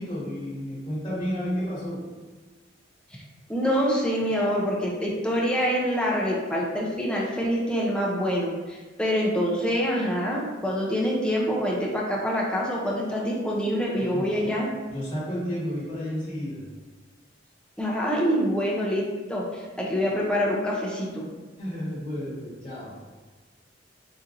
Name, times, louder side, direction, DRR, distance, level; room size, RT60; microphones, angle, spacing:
voice 1, 0.0-2.0 14.0-14.3 14.9-16.6 21.6-23.1, equal, 25° left, -10 dB, 1.3 m, -32 dB
voice 2, 3.5-14.7 17.8-19.0 19.3-21.3, equal, 5° left, -3 dB, 0.5 m, -26 dB
4.2 x 2.5 x 2.5 m, 1.3 s
head